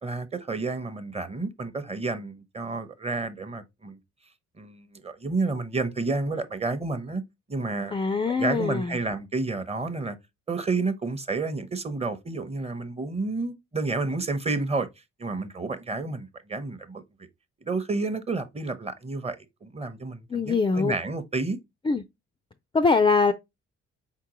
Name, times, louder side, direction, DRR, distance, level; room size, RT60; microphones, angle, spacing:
voice 1, 0.0-4.0 4.6-7.2 7.5-7.9 8.3-10.2 10.5-14.9 15.2-17.0 17.6-21.6, right 3 dB, 20° right, 0.7 m, -30 dB
voice 2, 7.9-8.9 20.3-20.9 21.9-22.0 22.7-23.3, left 4 dB, 20° left, 0.3 m, -22 dB
4.4 x 3.7 x 2.9 m
cardioid pair, 90°, 30 cm